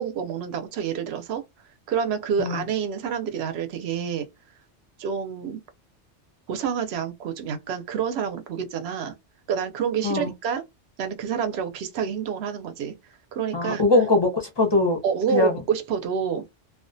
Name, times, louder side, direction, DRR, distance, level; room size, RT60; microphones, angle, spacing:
voice 1, 0.0-1.4 1.9-4.3 5.0-5.6 6.5-9.2 9.5-10.6 11.0-12.9 13.3-13.8 15.0-16.5, right 7 dB, 70° right, 0.8 m, -28 dB
voice 2, 13.5-15.0 15.3-15.6, left 2 dB, 30° left, 0.5 m, -21 dB
2.3 x 2.2 x 2.5 m
omnidirectional pair, 1.2 m